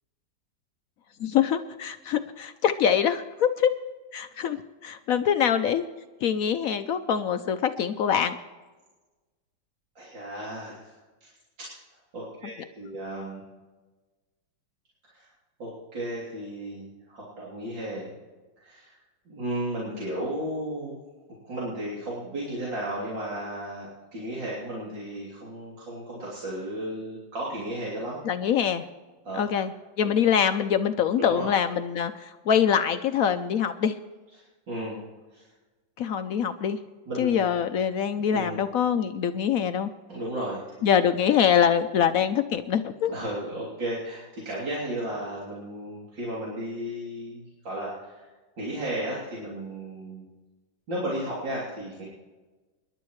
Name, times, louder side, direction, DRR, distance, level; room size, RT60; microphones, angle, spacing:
voice 1, 1.2-3.7 4.1-5.8 6.2-8.4 28.3-28.8 29.3-29.7 30.0-34.0 36.0-36.8 37.2-39.9 40.8-43.1, left 8 dB, 70° left, 10 dB, 0.8 m, -24 dB
voice 2, 10.0-10.9 11.2-11.3 11.6-11.7 12.1-13.4 15.0-15.3 15.6-18.1 18.6-19.0 19.3-21.0 21.4-28.2 29.2-29.5 30.0-30.1 31.2-31.5 34.3-35.0 35.3-35.5 37.1-37.6 38.1-38.6 40.1-41.1 43.1-48.3 48.6-50.3 50.9-52.1, right 1 dB, 75° right, -7 dB, 3.8 m, -34 dB
26.0 x 11.5 x 3.2 m, 1.2 s
omnidirectional pair, 2.0 m